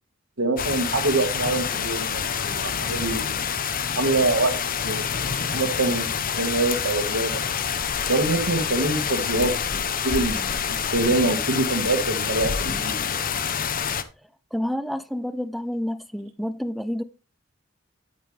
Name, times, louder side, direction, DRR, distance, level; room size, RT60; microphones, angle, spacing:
voice 1, 0.4-3.5 3.9-4.5 4.8-5.1 5.5-6.1 6.4-7.4 8.1-13.0, right 2 dB, 70° right, 1.6 m, -25 dB
sound 1, 0.6-14.0, left 7 dB, 45° left, 0.8 m, -27 dB
voice 2, 14.5-17.0, equal, ahead, 0.6 m, -29 dB
9.4 x 8.6 x 3.3 m
head